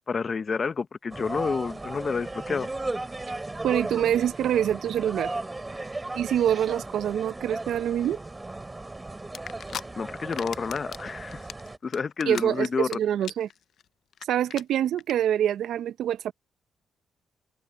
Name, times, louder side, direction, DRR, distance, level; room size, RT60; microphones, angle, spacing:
voice 1, 0.1-2.7 10.0-11.4 11.8-13.0, left 5 dB, 45° left, 1.1 m, -29 dB
sound 1, 1.1-11.8, right 2 dB, 20° right, 4.1 m, -36 dB
voice 2, 3.6-5.3 6.1-8.2 12.3-13.5 14.3-16.3, right 10 dB, 75° right, 0.9 m, -25 dB
sound 2, 9.3-9.8 10.2-11.0 11.3-12.9 13.2-13.5 13.8-13.9 14.1-14.2 14.5-14.6 15.0-15.1, left 9 dB, 70° left, 0.6 m, -37 dB
supercardioid pair, 55°, 0 cm